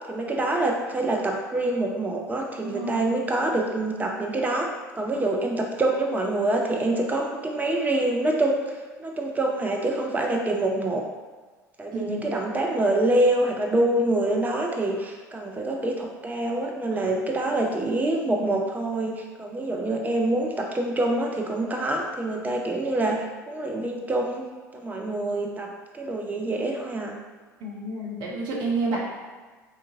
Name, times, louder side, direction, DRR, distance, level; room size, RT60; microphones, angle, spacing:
voice 1, 0.1-8.6 9.0-11.0 11.8-27.2, right 2 dB, 15° right, 1 dB, 0.4 m, -26 dB
voice 2, 2.7-3.2 11.9-12.3 16.9-17.0 27.6-29.0, right 2 dB, 50° right, -3 dB, 0.7 m, -30 dB
2.6 x 2.4 x 2.7 m, 1.4 s
figure-of-eight pair, 65°, 9 cm